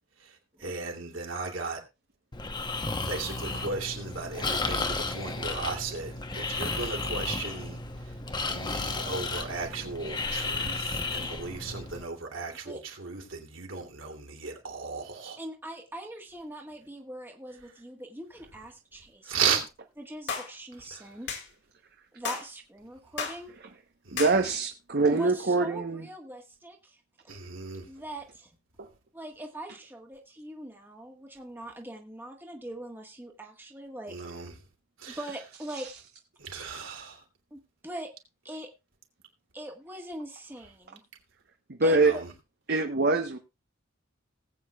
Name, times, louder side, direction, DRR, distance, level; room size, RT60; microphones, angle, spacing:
voice 1, 0.2-1.8 3.0-8.2 8.4-15.4 17.6-17.7 19.2-19.6 20.9-21.2 24.0-24.5 27.3-27.9 34.1-34.5 35.0-35.2 36.4-37.2 41.9-42.3, right 5 dB, 65° right, 2.9 m, -35 dB
Breathing, 2.3-12.0, left 3 dB, 20° left, 0.9 m, -33 dB
voice 2, 15.4-19.6 20.0-21.3 22.1-23.5 25.1-27.0 27.2-27.4 27.9-28.5 29.1-34.5 35.1-35.9 37.5-38.1 38.4-38.7 39.5-41.0 41.8-42.2, right 1 dB, 10° right, 1.6 m, -42 dB
sound 1, 20.3-20.5 21.3-21.5 22.2-22.5 23.2-23.4 24.2-24.4, left 6 dB, 55° left, 2.1 m, -33 dB
voice 3, 24.1-26.0 28.8-28.9 35.7-35.8 41.7-42.1 42.7-43.4, right 3 dB, 50° right, 1.0 m, -24 dB
19.5 x 8.5 x 2.4 m
head